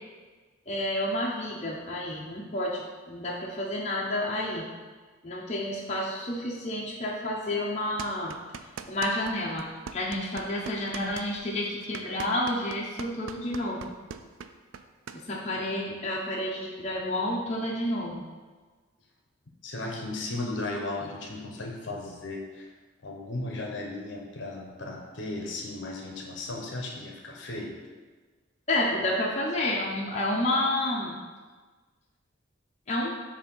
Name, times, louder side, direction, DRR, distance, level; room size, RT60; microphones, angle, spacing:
voice 1, 0.7-4.7 5.2-8.4 8.9-9.7 9.9-13.9 15.1-18.2 28.7-31.2 32.9-33.1, left 1 dB, 35° left, -4 dB, 0.7 m, -30 dB
sound 1, 8.0-9.3 9.6-15.2, right 6 dB, 80° right, 0.3 m, -41 dB
voice 2, 19.6-22.7 23.0-27.8, left 2 dB, 60° left, 0 dB, 0.8 m, -35 dB
7.1 x 2.6 x 5.3 m, 1.4 s
head